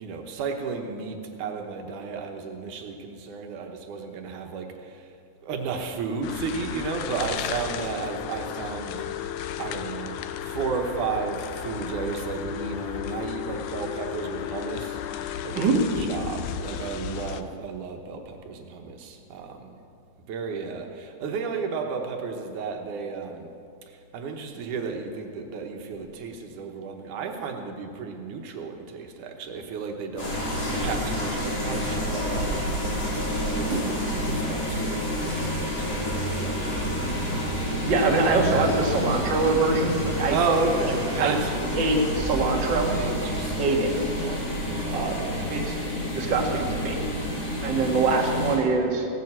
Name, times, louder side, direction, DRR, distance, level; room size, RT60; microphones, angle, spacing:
voice 1, 0.0-5.1 5.4-9.0 9.6-19.6 20.3-23.5 24.1-32.5 33.5-36.6 37.9-38.1 40.3-41.7 42.9-45.5, right 5 dB, 85° right, 4 dB, 2.6 m, -33 dB
sound 1, 6.2-17.4, left 10 dB, 75° left, 2.0 m, -34 dB
sound 2, 30.2-48.6, equal, 55° left, 4.8 m, -29 dB
voice 2, 37.8-40.4 41.2-41.3 41.7-42.9 43.2-43.3 43.6-43.9 44.9-45.2 45.5-45.7 46.1-47.0 47.6-49.1, right 3 dB, 40° right, 0 dB, 2.1 m, -24 dB
17.0 x 9.2 x 7.7 m, 2.4 s
omnidirectional pair, 3.5 m